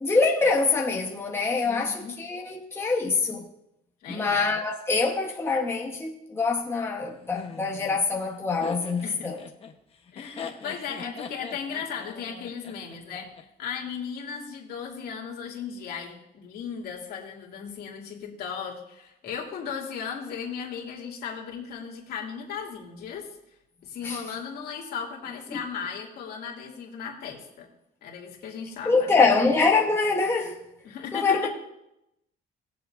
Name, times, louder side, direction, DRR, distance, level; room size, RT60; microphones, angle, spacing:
voice 1, 0.0-3.5 4.1-9.4 24.0-24.2 25.5-25.6 28.8-30.6 31.1-31.5, left 4 dB, 15° left, 1.2 m, -24 dB
voice 2, 1.6-2.2 4.0-4.4 9.0-9.3 10.1-13.3 13.6-23.3 23.8-27.7 28.0-29.3 30.8-31.5, left 6 dB, 65° left, 2.6 m, -36 dB
Laughter, 7.3-13.4, left 6 dB, 35° left, 1.2 m, -41 dB
20.5 x 7.4 x 2.7 m
cardioid pair, 110°, 17 cm